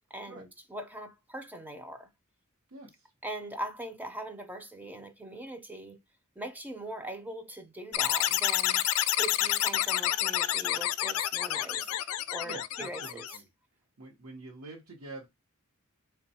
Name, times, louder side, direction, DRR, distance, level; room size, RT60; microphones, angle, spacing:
voice 1, 0.1-2.1 3.2-6.0 6.4-8.8 9.2-13.4, right 1 dB, 10° right, 0.4 m, -41 dB
voice 2, 2.7-3.1 12.4-13.4 14.0-15.3, right 2 dB, 85° right, 0.9 m, -46 dB
sound 1, 7.9-13.4, left 13 dB, 75° left, 0.3 m, -28 dB
3.4 x 2.2 x 4.0 m
head